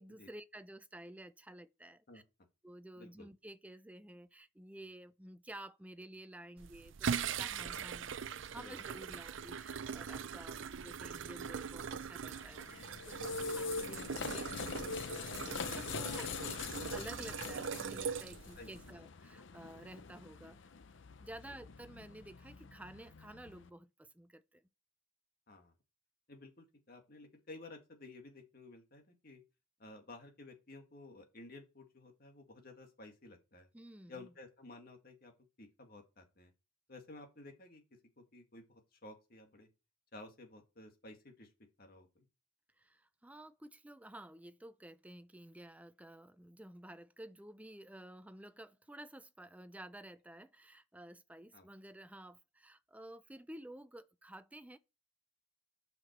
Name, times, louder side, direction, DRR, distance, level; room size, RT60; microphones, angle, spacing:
voice 1, 0.0-2.2 2.6-16.3 16.8-20.7 21.2-24.6 33.7-34.3 42.8-54.8, right 1 dB, 5° right, 0.5 m, -52 dB
voice 2, 3.0-3.3 7.7-7.8 8.6-8.9 13.5-13.6 18.6-18.9 21.4-21.5 25.5-25.7 26.3-29.4 29.8-33.7 34.1-35.3 35.6-36.5 36.9-37.8 38.2-39.7 40.1-41.5 41.8-42.3 51.5-51.7, left 2 dB, 50° left, 2.0 m, -54 dB
sound 1, 6.6-18.9, right 7 dB, 70° right, 0.5 m, -41 dB
sound 2, 12.3-23.7, left 5 dB, 70° left, 0.6 m, -44 dB
7.7 x 5.9 x 6.6 m
head